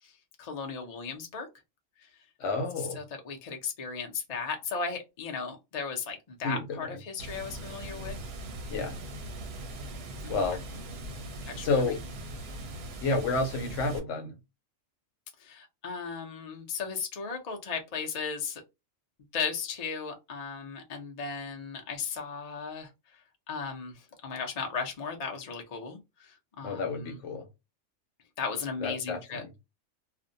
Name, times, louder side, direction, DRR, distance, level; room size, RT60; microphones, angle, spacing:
voice 1, 0.0-1.5 2.0-2.1 3.0-8.2 10.2-10.4 11.4-11.8 15.4-18.6 19.3-27.2 28.4-29.5, left 5 dB, 45° left, 0.5 m, -36 dB
voice 2, 2.4-3.0 6.4-7.0 8.7-9.0 10.3-10.6 11.6-12.0 13.0-14.4 26.6-27.5 28.8-29.5, left 3 dB, 70° left, 1.0 m, -30 dB
Water, 7.2-14.0, right 1 dB, 60° right, 0.8 m, -40 dB
2.5 x 2.1 x 2.6 m
omnidirectional pair, 1.3 m